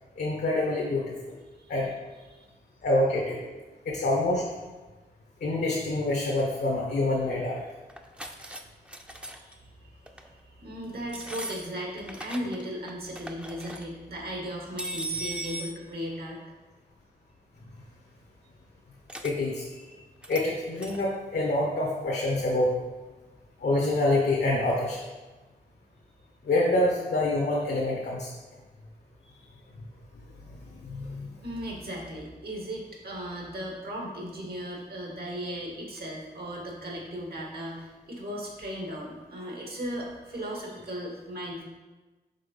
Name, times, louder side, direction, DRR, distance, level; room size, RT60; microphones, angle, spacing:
voice 1, 0.2-1.4 1.7-1.9 2.8-3.4 3.8-4.4 5.4-7.6 19.2-19.7 20.3-22.7 23.6-25.0 26.4-28.3 30.7-31.3, left 2 dB, 75° left, -3 dB, 1.1 m, -26 dB
sound 1, 7.9-8.6 8.9-9.5 10.1-10.3 11.1-12.6 12.9-13.8 14.8-15.8 19.1-19.3 20.2-20.5 20.8-21.0, right 2 dB, 5° right, 0.6 m, -38 dB
voice 2, 10.2-16.4 31.4-41.6, equal, 65° right, -1 dB, 1.7 m, -37 dB
5.6 x 3.7 x 5.4 m, 1.2 s
cardioid pair, 55°, 17 cm